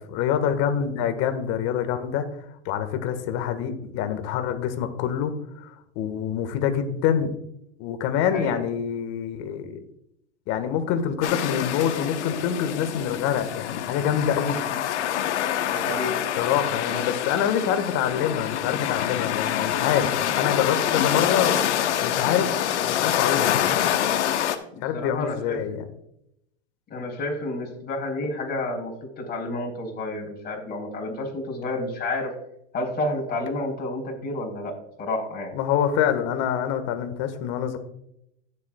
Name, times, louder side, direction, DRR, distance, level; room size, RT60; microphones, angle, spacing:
voice 1, 0.1-2.2 2.7-5.3 5.6-7.3 7.8-9.8 10.5-14.6 16.4-20.1 20.4-21.5 22.0-22.5 22.8-23.6 24.8-25.9 35.5-37.8, left 9 dB, 50° left, 8 dB, 1.6 m, -26 dB
voice 2, 8.2-8.6 15.7-16.2 16.9-17.0 24.7-25.6 26.9-32.3 32.7-35.5, left 2 dB, 25° left, -1 dB, 4.0 m, -30 dB
sound 1, 11.2-24.6, left 10 dB, 75° left, 1.1 m, -26 dB
16.5 x 7.4 x 2.3 m, 0.77 s
hypercardioid pair, 115°, 35 cm